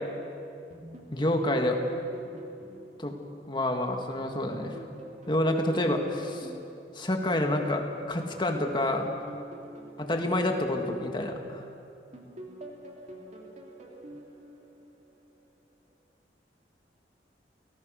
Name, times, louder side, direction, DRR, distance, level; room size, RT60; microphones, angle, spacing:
sound 1, 0.7-4.0 4.5-7.8 8.3-11.6 12.1-15.4, right 1 dB, 40° right, 2.9 m, -47 dB
voice 1, 1.1-1.8 3.0-3.2 3.5-4.8 5.3-6.5 7.0-9.2 10.0-11.7, left 1 dB, 25° left, 3 dB, 1.9 m, -28 dB
29.5 x 18.0 x 6.5 m, 2.6 s
head